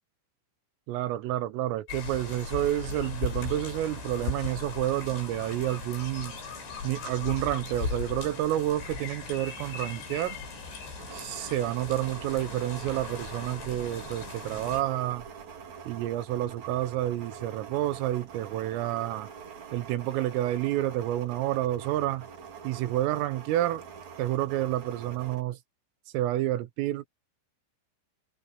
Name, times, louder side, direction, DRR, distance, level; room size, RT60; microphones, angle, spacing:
voice 1, 0.9-6.4 6.8-10.4 11.1-15.3 15.9-19.3 19.7-22.3 22.6-23.8 24.2-25.6 26.1-27.1, right 14 dB, 80° right, 3.8 m, -29 dB
sound 1, 1.9-14.8, left 4 dB, 60° left, 9.8 m, -38 dB
sound 2, 11.0-25.4, right 6 dB, 45° right, 3.1 m, -45 dB
omnidirectional pair, 5.9 m